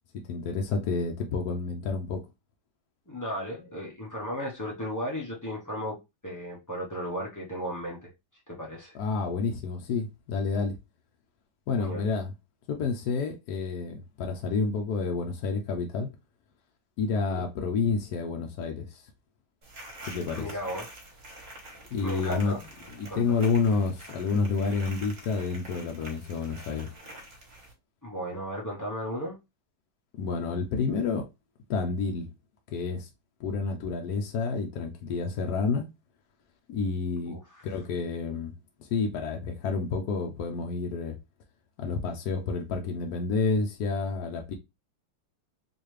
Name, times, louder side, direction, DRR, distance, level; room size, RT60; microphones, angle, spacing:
voice 1, 0.1-2.2 8.9-10.8 11.7-12.3 12.7-16.1 17.0-19.0 20.1-20.5 21.9-22.5 22.9-26.9 30.2-31.2 31.7-32.3 32.7-33.1 33.4-35.9 36.7-37.4 37.6-38.5 38.8-41.2 41.8-44.5, left 4 dB, 70° left, 1.0 m, -29 dB
voice 2, 3.1-6.0 6.2-8.1 8.5-9.0 11.8-12.1 17.3-17.5 20.4-20.9 22.0-22.7 23.1-23.2 28.0-29.4 37.3-37.6, equal, 30° left, 0.3 m, -35 dB
sound 1, 19.6-27.7, right 1 dB, 45° right, 1.4 m, -46 dB
4.0 x 2.7 x 3.1 m
omnidirectional pair, 2.1 m